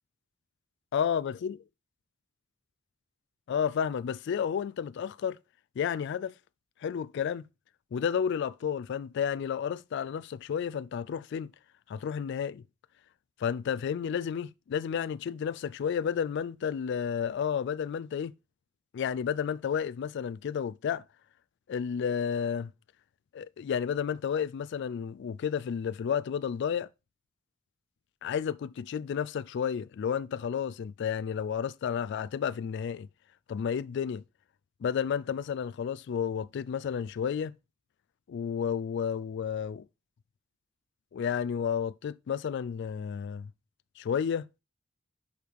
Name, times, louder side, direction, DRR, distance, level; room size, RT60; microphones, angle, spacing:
voice 1, 0.9-1.6 3.5-5.4 5.8-6.3 6.8-7.4 7.9-11.5 11.9-12.6 13.4-18.3 18.9-21.0 21.7-22.7 23.3-26.9 28.2-33.1 33.5-34.2 34.8-37.5 38.3-39.9 41.1-43.5 44.0-44.4, left 7 dB, 60° left, 0.3 m, -31 dB
6.5 x 4.6 x 5.1 m
head